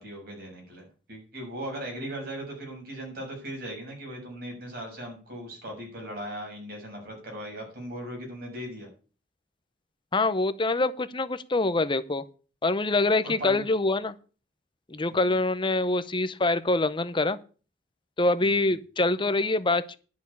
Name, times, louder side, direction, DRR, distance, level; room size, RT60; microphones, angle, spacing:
voice 1, 0.0-8.9 13.4-13.6 15.1-15.4 18.4-18.7, right 1 dB, 55° right, 1 dB, 6.8 m, -38 dB
voice 2, 10.1-12.2 12.6-14.1 14.9-17.4 18.2-20.0, left 2 dB, 25° left, 12 dB, 0.7 m, -25 dB
11.0 x 6.2 x 8.4 m, 0.37 s
head